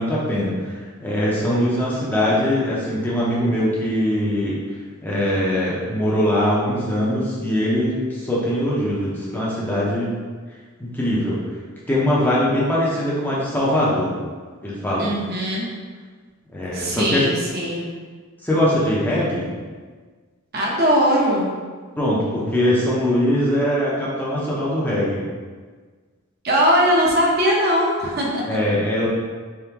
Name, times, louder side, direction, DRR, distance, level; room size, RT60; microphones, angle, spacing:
voice 1, 0.0-4.6 5.0-10.1 10.8-11.4 11.9-14.1 14.6-15.1 16.5-17.3 18.4-19.5 22.0-25.3 28.5-29.1, left 1 dB, 10° left, -7 dB, 0.7 m, -21 dB
voice 2, 15.0-15.7 16.7-17.9 20.5-21.5 26.4-28.6, equal, 45° right, -3 dB, 0.8 m, -20 dB
4.2 x 3.6 x 2.9 m, 1.5 s
head